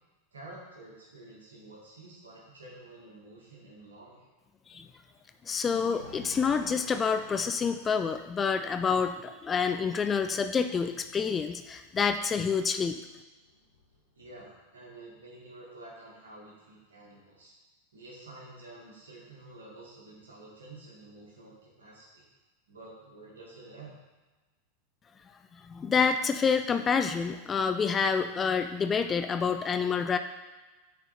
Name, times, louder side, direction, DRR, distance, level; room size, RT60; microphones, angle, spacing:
voice 1, 0.3-4.3 14.2-17.5 17.9-22.3 22.7-23.9, right 2 dB, 75° right, -4 dB, 1.8 m, -49 dB
Thunder, 4.8-12.0 13.0-14.8, left 2 dB, 85° left, 1.8 m, -54 dB
voice 2, 5.5-13.0 25.7-30.2, left 6 dB, 25° left, 8 dB, 0.4 m, -28 dB
9.2 x 4.3 x 4.2 m, 1.2 s
figure-of-eight pair, 90°, 0 cm